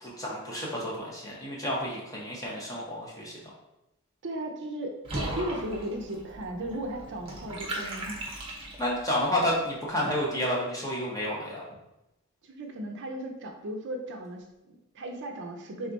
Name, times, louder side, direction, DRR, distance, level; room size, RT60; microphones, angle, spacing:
voice 1, 0.0-3.4 8.8-11.6, left 1 dB, 15° left, -5 dB, 1.1 m, -30 dB
voice 2, 4.2-8.2 12.4-15.9, right 1 dB, 55° right, 4 dB, 0.5 m, -36 dB
Water / Bathtub (filling or washing), 5.0-9.1, right 1 dB, 25° right, 0.9 m, -37 dB
3.6 x 3.2 x 4.0 m, 0.92 s
head